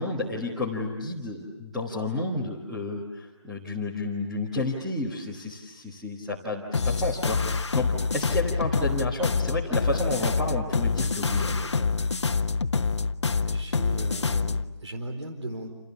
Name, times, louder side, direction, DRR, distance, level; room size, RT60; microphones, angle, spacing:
voice 1, 0.0-11.9, left 2 dB, ahead, -7 dB, 1.4 m, -31 dB
sound 1, 6.7-14.6, left 4 dB, 70° left, 1.3 m, -26 dB
voice 2, 13.4-15.7, right 1 dB, 75° right, 5 dB, 4.3 m, -37 dB
29.0 x 29.0 x 7.1 m, 1.1 s
hypercardioid pair, 175°, 15 cm